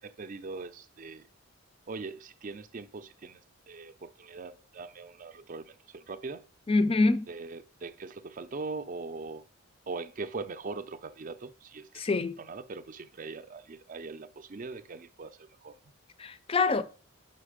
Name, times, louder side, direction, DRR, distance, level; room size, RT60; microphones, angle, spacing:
voice 1, 0.0-1.3 1.9-3.4 3.7-6.5 7.3-9.4 9.9-12.1 12.4-15.8, right 3 dB, 40° right, 0.4 m, -41 dB
voice 2, 6.7-7.3 11.9-12.4 16.2-16.8, left 3 dB, 25° left, 0.4 m, -25 dB
5.7 x 5.2 x 5.0 m
head